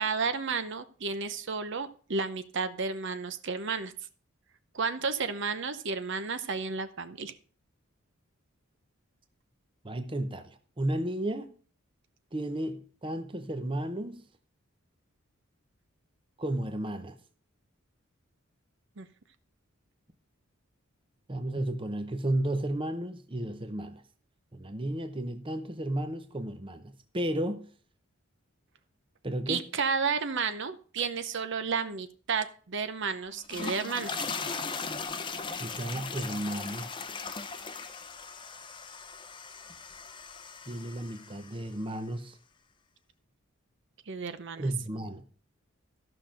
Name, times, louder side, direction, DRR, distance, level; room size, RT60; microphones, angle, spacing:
voice 1, 0.0-3.9 4.7-7.4 19.0-19.1 29.5-34.1 44.1-44.7, right 5 dB, 60° right, 0.8 m, -32 dB
voice 2, 9.8-11.5 12.3-14.2 16.4-17.2 21.3-24.0 24.5-27.7 29.2-29.7 35.6-36.9 40.7-42.4 44.6-45.2, right 1 dB, 25° right, 0.8 m, -33 dB
sound 1, 33.3-41.7, left 4 dB, 20° left, 0.7 m, -38 dB
14.0 x 5.9 x 5.1 m
head